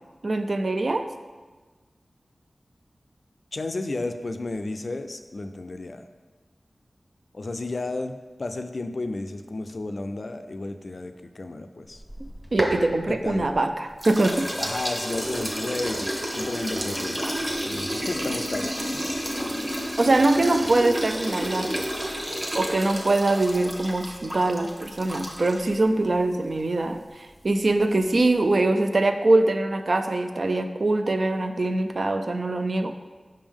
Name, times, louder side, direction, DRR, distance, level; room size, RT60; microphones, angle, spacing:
voice 1, 0.2-1.0 12.5-14.5 20.0-21.9 22.5-32.9, right 2 dB, 60° right, 7 dB, 0.4 m, -23 dB
voice 2, 3.5-6.0 7.3-12.0 13.1-13.6 14.6-17.4 17.6-19.0, left 2 dB, 60° left, 8 dB, 0.4 m, -33 dB
sound 1, 12.0-13.6 14.0-25.8, equal, 15° right, 1.0 m, -30 dB
5.3 x 5.2 x 3.6 m, 1.3 s
wide cardioid pair, 65°, 0 cm